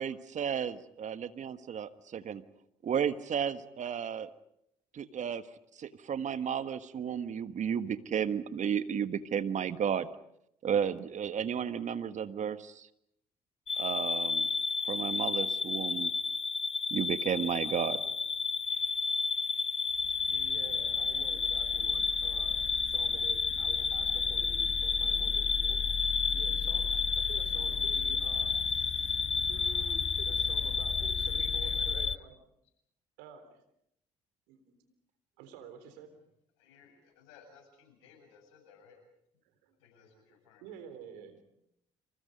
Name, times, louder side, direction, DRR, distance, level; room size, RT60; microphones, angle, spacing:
voice 1, 0.0-2.4 2.8-4.3 4.9-5.4 5.8-10.1 10.6-12.9 13.8-14.5 14.9-16.1 16.9-18.0, right 8 dB, 50° right, 11 dB, 1.5 m, -33 dB
sound 1, 13.7-32.2, left 5 dB, 40° left, 0.9 m, -31 dB
voice 2, 20.3-29.1 29.5-32.3 33.2-33.6 34.5-34.7 35.4-36.1 39.6-39.8 40.6-41.4, right 7 dB, 80° right, 9 dB, 3.7 m, -50 dB
voice 3, 31.2-32.1 36.6-39.0 39.8-40.8, left 6 dB, 80° left, 4 dB, 7.9 m, -58 dB
30.0 x 27.5 x 5.3 m, 0.75 s
hypercardioid pair, 50°, 15 cm